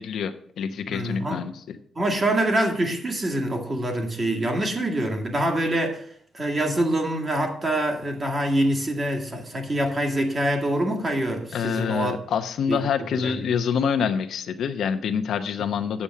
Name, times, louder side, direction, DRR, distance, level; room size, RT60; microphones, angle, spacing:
voice 1, 0.0-1.8 11.5-16.0, left 7 dB, 70° left, 8 dB, 0.8 m, -26 dB
voice 2, 0.9-1.4 2.0-6.1 6.3-12.2 12.7-12.8 13.2-13.5 15.7-15.8, right 1 dB, 25° right, 2 dB, 1.9 m, -25 dB
8.6 x 7.1 x 6.4 m, 0.62 s
wide cardioid pair, 155°, 0 cm